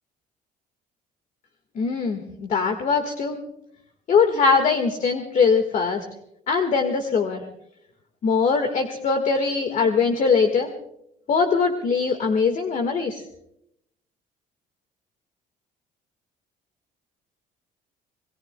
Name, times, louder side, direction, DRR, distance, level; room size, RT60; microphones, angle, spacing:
voice 1, 1.7-3.4 4.1-6.0 6.5-7.4 8.2-10.7 11.3-13.2, left 5 dB, 50° left, 6 dB, 1.6 m, -21 dB
28.0 x 19.0 x 2.2 m, 0.77 s
cardioid pair, 110°, 17 cm